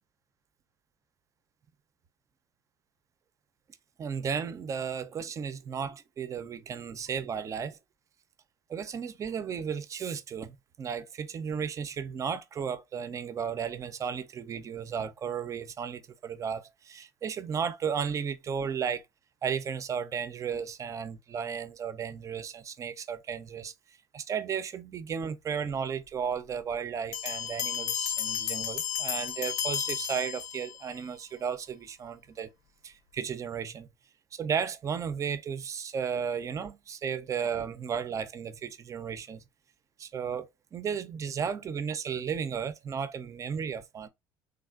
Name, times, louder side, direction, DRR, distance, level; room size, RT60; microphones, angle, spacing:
voice 1, 4.0-7.8 8.7-19.0 19.4-23.7 24.1-32.5 32.8-33.9 34.3-39.4 40.0-44.1, right 7 dB, 35° right, 0.4 m, -34 dB
sound 1, 27.1-30.9, left 9 dB, 90° left, 0.4 m, -33 dB
3.3 x 2.4 x 2.3 m
supercardioid pair, 90°, 10 cm